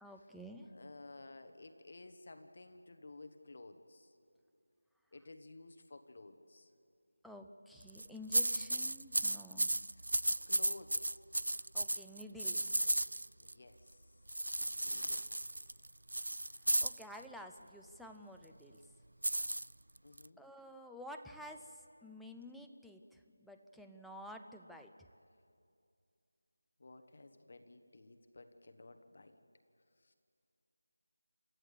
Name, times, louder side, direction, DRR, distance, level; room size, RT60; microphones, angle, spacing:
voice 1, 0.0-0.7 7.2-9.7 11.7-12.7 14.9-15.2 16.8-18.8 20.4-24.9, left 1 dB, ahead, 2 dB, 0.4 m, -51 dB
voice 2, 0.7-4.1 5.1-6.7 10.3-11.2 13.4-14.1 14.8-15.3 20.0-20.4 26.8-29.4 30.0-30.1, left 2 dB, 40° left, 7 dB, 1.3 m, -54 dB
sound 1, 7.8-8.1 8.3-13.5 14.3-17.0 19.2-20.3, right 1 dB, 90° right, 0.4 m, -34 dB
28.0 x 13.5 x 8.3 m, 2.5 s
figure-of-eight pair, 175°, 0 cm